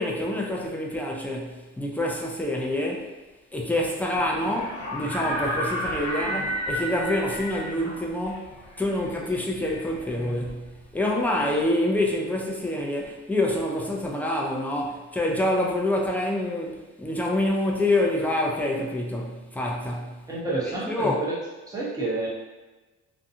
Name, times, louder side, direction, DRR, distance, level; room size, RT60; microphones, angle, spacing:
voice 1, 0.0-3.1 3.5-8.5 8.8-10.6 10.9-20.2 20.7-21.2, left 1 dB, 5° left, -2 dB, 0.4 m, -27 dB
sound 1, 4.1-11.0, equal, 50° left, 1.1 m, -33 dB
voice 2, 20.3-21.4 21.7-22.3, right 2 dB, 10° right, -7 dB, 0.9 m, -29 dB
2.7 x 2.2 x 2.6 m, 1.2 s
cardioid pair, 90°, 30 cm